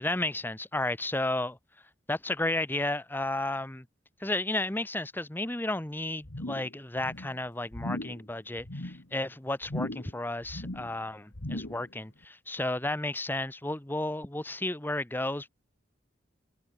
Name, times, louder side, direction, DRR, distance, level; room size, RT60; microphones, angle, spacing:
voice 1, 0.0-1.6 2.1-3.8 4.2-15.5, left 2 dB, 10° left, 0.9 m, -32 dB
sound 1, 6.2-6.7 7.0-7.4 7.7-8.2 8.6-9.0 9.6-10.2 10.4-10.9 11.3-11.9 12.2-12.3, left 1 dB, 90° left, 2.3 m, -37 dB
head